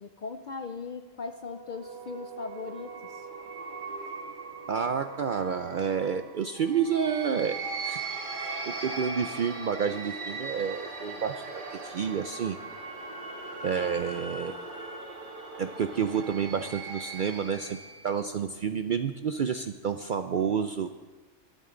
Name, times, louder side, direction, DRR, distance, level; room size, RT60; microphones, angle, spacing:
voice 1, 0.0-3.3, left 4 dB, 60° left, 8 dB, 0.5 m, -39 dB
sound 1, 1.2-18.1, right 3 dB, 40° right, 1.6 m, -39 dB
voice 2, 4.7-8.0 8.4-12.6 13.6-14.5 15.6-17.8 18.0-20.9, right 7 dB, 60° right, 9 dB, 0.5 m, -29 dB
23.0 x 9.1 x 3.8 m, 1.2 s
omnidirectional pair, 1.3 m